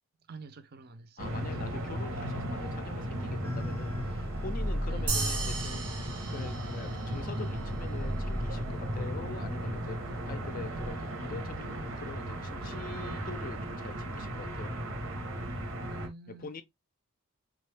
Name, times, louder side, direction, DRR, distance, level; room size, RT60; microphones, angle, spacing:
voice 1, 0.3-1.4 4.9-5.2 10.6-11.2 15.9-16.5, right 4 dB, 45° right, 0.5 m, -47 dB
voice 2, 1.2-5.9 6.3-14.8 16.3-16.6, left 4 dB, 40° left, 0.4 m, -44 dB
sound 1, 1.2-16.1, right 1 dB, 60° right, 0.9 m, -36 dB
sound 2, 3.4-10.9, equal, 10° left, 0.7 m, -39 dB
sound 3, 5.1-7.8, right 4 dB, 85° right, 1.3 m, -37 dB
3.7 x 2.3 x 3.3 m
head